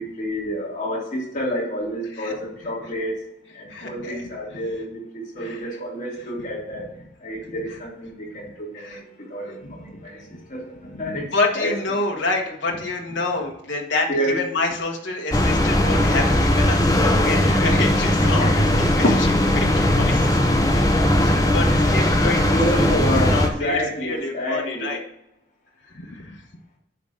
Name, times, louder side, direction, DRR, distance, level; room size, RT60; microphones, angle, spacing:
voice 1, 0.0-3.2 3.5-6.9 7.2-11.7 14.1-14.4 18.4-18.7 21.4-21.9 22.3-24.9, equal, 40° left, -4 dB, 3.1 m, -29 dB
voice 2, 3.7-4.3 5.4-5.6 8.8-9.0 9.9-10.0 10.9-22.5 22.7-25.0 25.9-26.4, left 3 dB, 70° left, 1 dB, 1.3 m, -27 dB
sound 1, 15.3-23.5, left 1 dB, 20° left, 0.8 m, -19 dB
10.5 x 3.7 x 6.5 m, 0.83 s
head